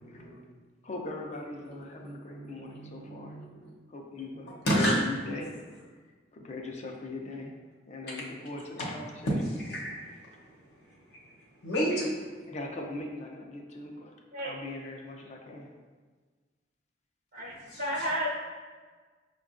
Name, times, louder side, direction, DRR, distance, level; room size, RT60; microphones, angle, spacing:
voice 1, 0.0-0.4 1.6-3.7 4.6-5.0 9.4-10.3 11.6-12.1 17.7-18.1, equal, 65° left, -5 dB, 0.8 m, -32 dB
voice 2, 0.8-3.4 3.9-5.5 6.3-7.5 7.9-9.3 12.5-14.1 14.4-15.7, left 2 dB, 40° left, 2 dB, 0.4 m, -40 dB
voice 3, 17.3-18.4, equal, 55° right, -4 dB, 0.5 m, -32 dB
5.3 x 2.3 x 2.5 m, 1.4 s
head